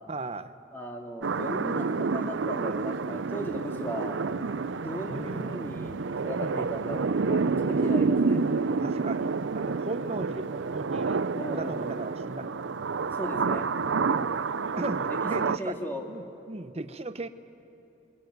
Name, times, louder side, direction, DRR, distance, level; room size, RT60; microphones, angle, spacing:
voice 1, 0.1-0.5 5.1-5.5 6.3-6.7 8.8-9.3 9.5-11.2 11.5-12.6 14.1-14.4 14.8-15.8 16.1-17.3, right 2 dB, 30° right, 11 dB, 0.8 m, -37 dB
voice 2, 0.7-4.2 4.8-8.4 11.3-11.9 13.1-13.7 15.1-16.0, equal, 10° left, 1 dB, 2.2 m, -37 dB
sound 1, 1.2-15.6, right 4 dB, 75° right, 0.6 m, -29 dB
22.5 x 21.5 x 9.2 m, 2.8 s
head